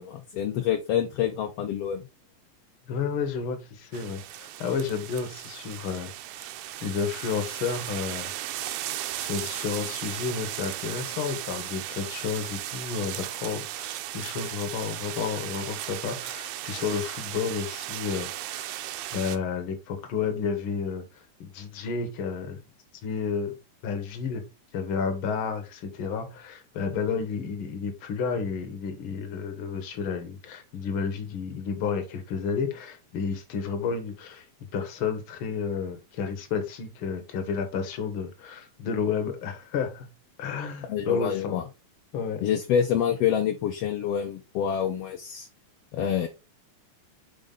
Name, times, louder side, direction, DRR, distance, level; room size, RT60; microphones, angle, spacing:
voice 1, 0.0-2.0 40.9-41.6 42.4-45.5 45.9-46.3, left 9 dB, 70° left, 1.5 m, -27 dB
voice 2, 2.9-6.1 6.4-6.5 6.8-8.3 9.2-18.8 19.1-22.6 23.0-23.6 23.8-24.4 24.7-34.4 34.7-40.1 40.4-41.6 42.1-42.4, left 6 dB, 55° left, 1.7 m, -31 dB
sound 1, 3.9-19.4, right 13 dB, 80° right, 2.0 m, -36 dB
5.3 x 5.0 x 3.9 m
omnidirectional pair, 3.4 m